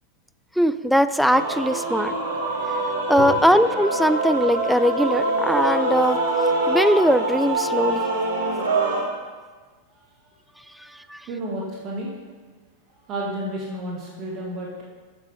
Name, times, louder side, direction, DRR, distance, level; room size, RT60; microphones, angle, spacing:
voice 1, 0.6-2.1 3.1-6.2 6.7-8.1 10.8-11.3, equal, ahead, 13 dB, 0.3 m, -20 dB
Male singing / Female singing / Musical instrument, 1.3-9.0, right 2 dB, 60° right, 2.7 m, -24 dB
voice 2, 9.9-12.2 12.9-14.8, right 1 dB, 35° right, -2 dB, 1.7 m, -33 dB
14.0 x 6.6 x 3.3 m, 1.4 s
figure-of-eight pair, 90°, 0 cm